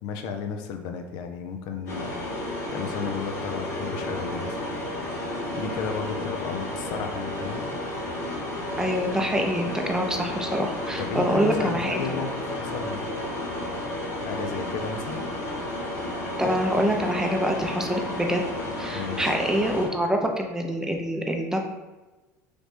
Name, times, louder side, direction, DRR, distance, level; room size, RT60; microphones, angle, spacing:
voice 1, 0.0-2.4 2.7-4.8 5.5-7.6 11.0-13.1 14.2-15.2 18.9-19.4, left 6 dB, 60° left, 6 dB, 0.5 m, -33 dB
sound 1, 1.9-19.9, left 1 dB, 80° left, 1.2 m, -32 dB
voice 2, 8.8-12.0 16.4-18.4 18.8-21.6, equal, 5° right, 2 dB, 0.6 m, -25 dB
3.2 x 2.5 x 3.3 m, 1.2 s
hypercardioid pair, 75°, 9 cm